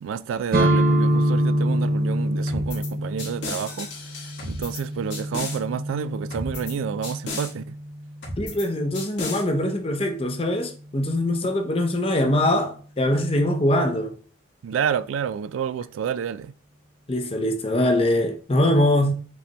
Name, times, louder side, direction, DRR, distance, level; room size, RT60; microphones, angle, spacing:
voice 1, 0.0-3.9 4.4-7.8 14.6-16.5, right 7 dB, 85° right, 0.3 m, -29 dB
sound 1, 0.5-8.3, right 1 dB, 45° right, 0.7 m, -25 dB
sound 2, 2.5-2.9 3.2-4.8 5.1-5.6 6.3-6.7 7.0-7.5 8.2-8.7 8.9-9.4, left 2 dB, 70° left, 1.7 m, -34 dB
voice 2, 8.4-14.2 17.1-19.1, left 1 dB, 30° left, 0.6 m, -22 dB
5.3 x 3.4 x 2.9 m
head